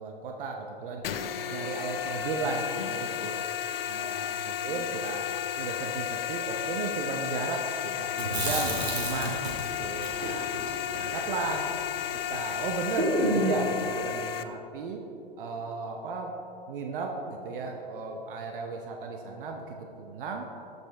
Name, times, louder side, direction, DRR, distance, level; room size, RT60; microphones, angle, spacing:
voice 1, 0.0-3.4 3.9-5.2 5.6-10.5 10.9-11.7 12.3-15.0 15.4-16.3 16.7-20.5, right 4 dB, 60° right, 2 dB, 0.9 m, -35 dB
sound 1, 1.0-14.4, left 10 dB, 65° left, 0.5 m, -33 dB
Chewing mastication, 8.1-12.3 12.5-12.6 13.0-13.7, right 1 dB, 85° right, 1.9 m, -31 dB
14.0 x 5.4 x 3.4 m, 2.8 s
figure-of-eight pair, 95°, 31 cm